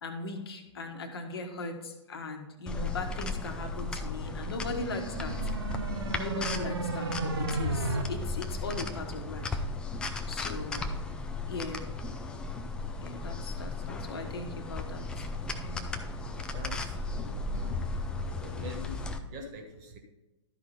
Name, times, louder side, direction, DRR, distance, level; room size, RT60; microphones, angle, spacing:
voice 1, 0.0-5.3 6.1-9.6 10.3-11.0 11.5-11.8 13.0-15.3 15.6-15.9, left 3 dB, 55° left, 5 dB, 1.3 m, -39 dB
sound 1, 2.7-19.2, left 3 dB, 5° left, 0.4 m, -35 dB
sound 2, 4.7-8.0, right 3 dB, 55° right, 1.1 m, -34 dB
voice 2, 16.5-17.8 18.2-20.0, equal, 30° right, 4 dB, 1.3 m, -45 dB
12.5 x 4.9 x 4.3 m, 1.0 s
figure-of-eight pair, 120°, 16 cm